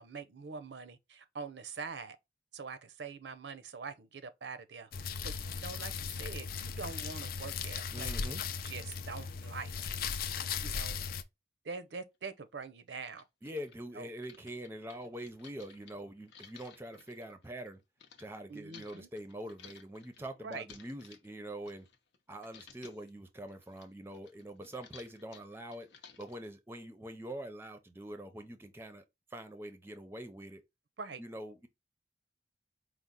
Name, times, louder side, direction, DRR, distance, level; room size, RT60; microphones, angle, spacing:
voice 1, 0.0-2.2 2.5-8.4 8.6-9.7 10.6-11.0 11.6-13.3 13.9-14.1 18.5-19.1 20.4-20.7 31.0-31.2, right 5 dB, 80° right, 0.5 m, -44 dB
sound 1, 4.9-11.2, left 6 dB, 55° left, 0.4 m, -37 dB
voice 2, 7.9-8.4 13.4-17.8 18.2-21.9 22.3-25.9 26.2-29.0 29.3-30.6 31.2-31.7, right 1 dB, 15° right, 0.5 m, -44 dB
sound 2, 11.9-12.0 12.6-12.7 13.0-18.2 18.7-22.2 22.4-23.1 23.5-26.5, left 6 dB, 85° left, 0.7 m, -57 dB
4.6 x 2.0 x 3.9 m
head